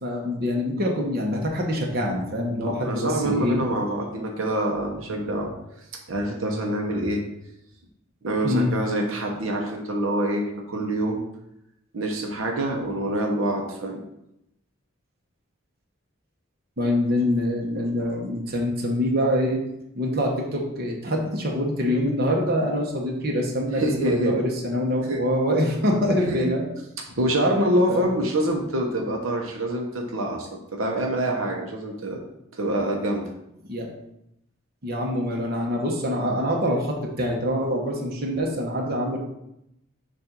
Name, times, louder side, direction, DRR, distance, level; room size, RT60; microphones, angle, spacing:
voice 1, 0.0-3.6 8.4-8.7 16.8-19.6 19.9-26.7 27.9-28.0 33.7-33.9 34.8-39.2, equal, 50° right, 0 dB, 1.0 m, -25 dB
voice 2, 2.6-5.5 6.1-7.2 8.2-11.2 11.9-14.0 23.7-24.4 25.1-25.2 26.2-26.5 27.1-32.2 32.5-33.3 37.8-38.0, right 1 dB, 80° right, 1 dB, 0.9 m, -26 dB
7.2 x 2.6 x 5.2 m, 0.82 s
head